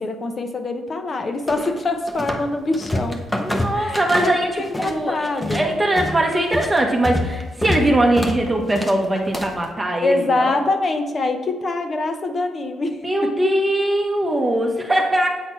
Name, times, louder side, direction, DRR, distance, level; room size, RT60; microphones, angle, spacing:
voice 1, 0.0-3.2 3.7-5.7 10.0-13.3, left 2 dB, 40° left, 6 dB, 0.9 m, -24 dB
sound 1, 1.5-2.5 2.7-5.0 5.3-9.7, left 1 dB, 10° left, 1.0 m, -26 dB
voice 2, 3.4-10.6 13.0-15.3, right 1 dB, 15° right, 0 dB, 1.0 m, -21 dB
8.2 x 4.1 x 4.5 m, 1.4 s
cardioid pair, 90°, 0 cm